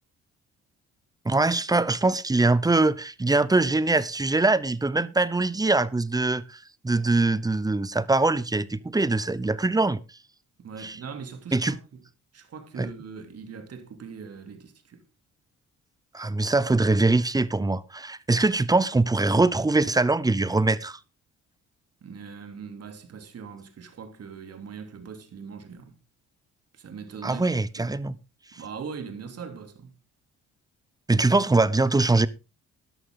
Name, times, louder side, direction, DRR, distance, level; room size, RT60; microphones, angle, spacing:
voice 1, 1.2-6.6 6.8-10.0 10.8-11.0 11.5-11.8 12.8-12.9 16.1-21.0 27.2-28.1 31.1-32.3, right 2 dB, 10° right, 0.8 m, -23 dB
voice 2, 10.6-11.9 12.3-15.0 22.0-26.0 26.7-27.5 27.8-27.9 28.5-29.9, right 6 dB, 55° right, 3.0 m, -41 dB
13.0 x 11.0 x 3.8 m
cardioid pair, 90°, 30 cm